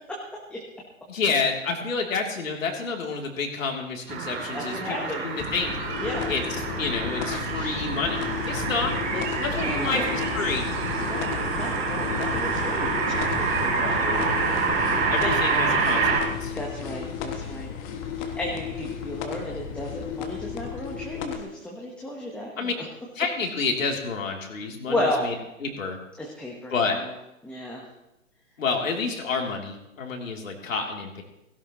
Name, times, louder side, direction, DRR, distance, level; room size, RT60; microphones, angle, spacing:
voice 1, 1.1-5.0 5.2-8.9 9.4-10.7 13.7-14.0 15.1-16.5 22.6-22.7 23.1-25.3 25.6-26.0 26.7-27.0 28.6-31.2, left 4 dB, 70° left, 1 dB, 3.1 m, -29 dB
sound 1, 4.1-16.2, right 4 dB, 25° right, 3.7 m, -27 dB
voice 2, 4.5-5.2 6.0-6.3 7.5-7.7 9.1-10.1 11.0-13.2 13.8-14.3 16.5-17.7 18.2-22.8 24.9-25.3 26.2-27.1 27.4-27.8, left 1 dB, 5° left, -2 dB, 1.1 m, -33 dB
sound 2, 5.4-21.4, left 7 dB, 20° left, 1.3 m, -33 dB
16.5 x 16.5 x 3.0 m, 0.89 s
hypercardioid pair, 140°, 41 cm